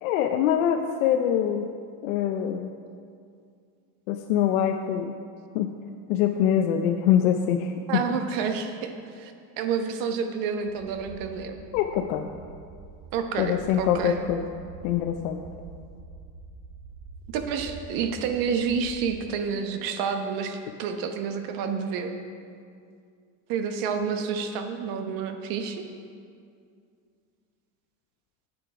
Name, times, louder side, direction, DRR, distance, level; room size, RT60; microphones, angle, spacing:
voice 1, 0.0-1.7 2.0-2.7 4.1-5.1 5.5-5.7 6.1-8.0 11.7-12.3 13.4-14.4 14.8-15.4, left 9 dB, 85° left, 4 dB, 0.7 m, -24 dB
voice 2, 7.9-11.6 13.1-14.2 17.3-22.1 23.5-25.8, right 6 dB, 55° right, 6 dB, 1.1 m, -29 dB
sound 1, 10.7-19.3, right 4 dB, 75° right, 1.5 m, -46 dB
9.4 x 8.8 x 4.8 m, 2.3 s
supercardioid pair, 145°, 41 cm